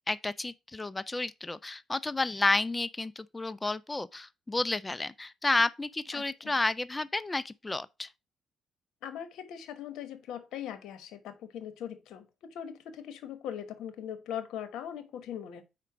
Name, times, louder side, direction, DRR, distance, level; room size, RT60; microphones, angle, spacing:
voice 1, 0.1-8.1, left 2 dB, 20° left, 0.3 m, -31 dB
voice 2, 6.1-6.6 9.0-15.6, left 9 dB, 85° left, 1.1 m, -40 dB
5.0 x 4.4 x 6.0 m
cardioid pair, 90°, 0 cm